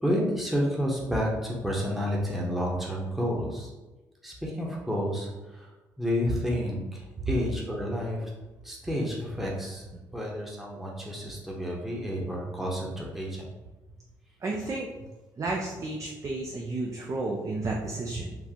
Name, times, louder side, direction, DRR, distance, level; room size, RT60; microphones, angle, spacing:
voice 1, 0.0-3.7 4.2-5.7 6.0-8.3 8.6-9.8 10.1-13.4, equal, 5° right, -4 dB, 0.9 m, -30 dB
voice 2, 14.4-14.9 15.4-18.4, right 2 dB, 40° right, -1 dB, 0.5 m, -32 dB
3.7 x 2.4 x 2.9 m, 1.1 s
hypercardioid pair, 55°, 9 cm